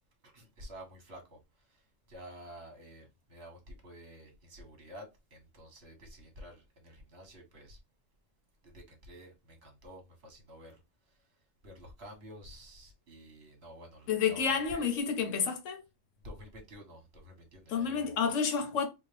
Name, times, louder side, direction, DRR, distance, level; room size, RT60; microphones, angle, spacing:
voice 1, 0.3-1.8 2.1-7.8 8.6-10.8 11.1-11.2 11.6-14.9 16.2-18.2, equal, 60° right, 1.6 m, -50 dB
voice 2, 14.1-15.8 17.7-18.9, left 6 dB, 90° left, 1.1 m, -30 dB
4.4 x 2.4 x 3.3 m
omnidirectional pair, 1.3 m